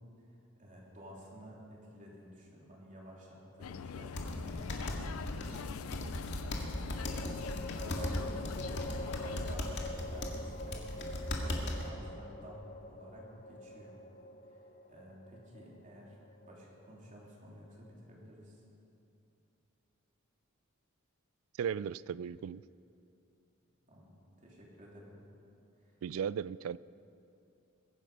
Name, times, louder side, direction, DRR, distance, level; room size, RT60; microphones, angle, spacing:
voice 1, 0.6-5.7 6.4-6.7 7.2-10.8 11.4-14.0 14.9-16.2 16.5-18.6 23.9-24.1 24.4-25.2, equal, 40° right, -3 dB, 3.3 m, -52 dB
sound 1, 3.5-4.3 6.6-17.9, left 1 dB, 40° left, 0.6 m, -47 dB
sound 2, 3.6-9.6, left 6 dB, 85° left, 0.4 m, -43 dB
sound 3, 4.2-11.9, left 1 dB, 60° left, 1.9 m, -38 dB
voice 2, 21.6-22.6 26.0-26.8, right 8 dB, 80° right, 20 dB, 0.3 m, -36 dB
22.0 x 10.0 x 5.5 m, 2.7 s
head